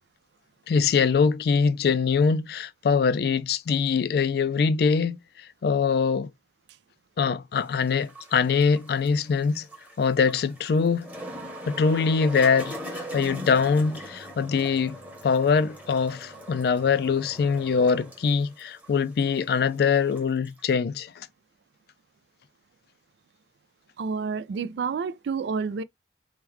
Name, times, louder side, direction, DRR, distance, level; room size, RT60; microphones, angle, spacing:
voice 1, 0.7-6.3 7.2-9.7 10.0-11.1 11.7-15.0 15.2-21.3, left 5 dB, 60° left, 0.3 m, -23 dB
sound 1, 7.6-20.6, equal, 10° right, 0.9 m, -41 dB
voice 2, 24.0-25.8, right 5 dB, 75° right, 0.3 m, -29 dB
3.6 x 2.2 x 2.9 m
head